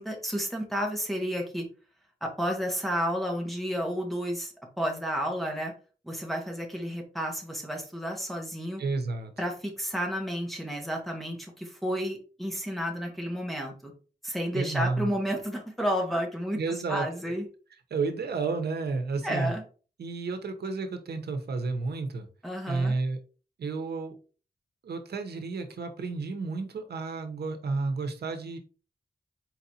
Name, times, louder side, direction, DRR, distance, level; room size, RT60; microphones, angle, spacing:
voice 1, 0.0-1.6 2.2-5.7 6.0-8.8 9.4-13.9 14.2-16.6 16.9-17.4 19.2-19.6 22.4-22.9, equal, ahead, 0 dB, 1.3 m, -31 dB
voice 2, 8.8-9.3 14.5-15.1 16.5-17.4 17.9-19.5 20.0-22.3 22.7-23.2 23.6-24.1 24.8-28.6, right 3 dB, 90° right, 6 dB, 0.8 m, -31 dB
4.5 x 3.9 x 2.8 m, 0.37 s
wide cardioid pair, 110°, 17 cm